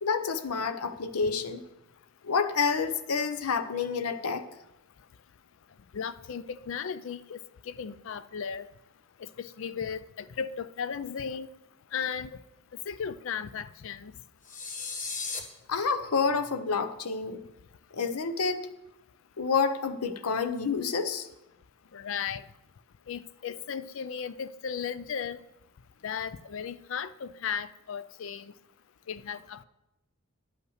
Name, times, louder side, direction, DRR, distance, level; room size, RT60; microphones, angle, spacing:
voice 1, 0.0-1.6 2.2-4.5 15.7-17.4 17.9-18.7 19.4-21.3, left 5 dB, 85° left, 0.7 m, -28 dB
voice 2, 5.9-7.4 7.7-8.7 9.2-11.5 11.9-12.3 12.9-14.1 21.9-22.4 23.1-25.4 26.0-28.5 29.1-29.6, left 7 dB, 60° left, 0.4 m, -35 dB
sound 1, 14.4-15.4, left 4 dB, 35° left, 1.0 m, -35 dB
10.5 x 5.6 x 6.4 m
head